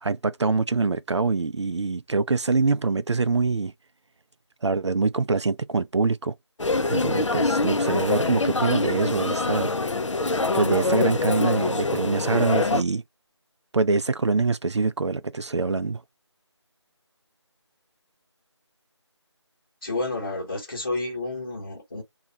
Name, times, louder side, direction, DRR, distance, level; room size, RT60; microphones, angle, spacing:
voice 1, 0.0-3.7 4.6-6.3 6.9-9.7 10.5-13.0 13.7-16.0, right 4 dB, 70° right, 0.4 m, -24 dB
sound 1, 6.6-12.8, left 3 dB, 90° left, 0.6 m, -24 dB
voice 2, 19.8-22.0, left 2 dB, 30° left, 0.9 m, -30 dB
3.2 x 2.4 x 3.8 m
figure-of-eight pair, 175°, 15 cm